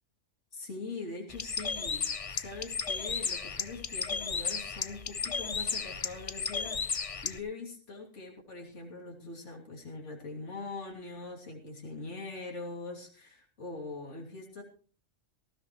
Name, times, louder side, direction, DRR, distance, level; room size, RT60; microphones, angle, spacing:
voice 1, 0.5-2.0 2.3-14.6, left 3 dB, 65° left, -1 dB, 3.3 m, -42 dB
Bird, 1.3-7.4, left 5 dB, 35° left, 0.7 m, -34 dB
19.0 x 14.5 x 3.1 m, 0.42 s
omnidirectional pair, 1.3 m